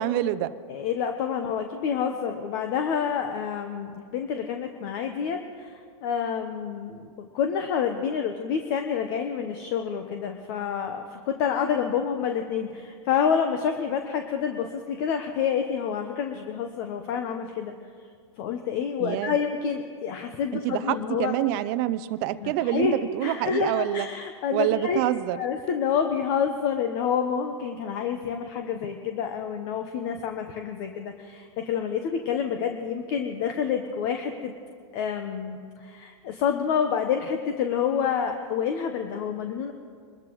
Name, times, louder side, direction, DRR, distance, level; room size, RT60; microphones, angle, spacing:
voice 1, 0.0-0.5 19.0-19.3 20.5-24.1 24.5-25.4, right 14 dB, 45° right, 13 dB, 0.6 m, -26 dB
voice 2, 0.7-17.7 18.4-21.3 22.4-23.0 23.2-25.0 25.3-34.5 34.9-39.7, left 7 dB, 50° left, 5 dB, 1.0 m, -28 dB
23.5 x 13.5 x 3.1 m, 2.1 s
hypercardioid pair, 130°, 16 cm